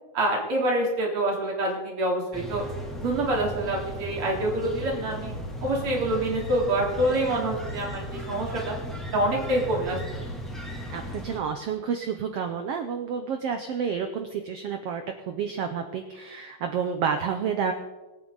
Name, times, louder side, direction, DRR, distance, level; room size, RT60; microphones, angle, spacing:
voice 1, 0.1-2.6 3.0-5.3 5.6-8.7 9.1-10.0, right 1 dB, 45° right, -2 dB, 4.2 m, -26 dB
sound 1, 2.3-11.4, equal, ahead, 2.2 m, -36 dB
voice 2, 10.9-17.7, right 6 dB, 70° right, 6 dB, 1.5 m, -30 dB
23.5 x 9.1 x 4.0 m, 1.1 s
omnidirectional pair, 3.7 m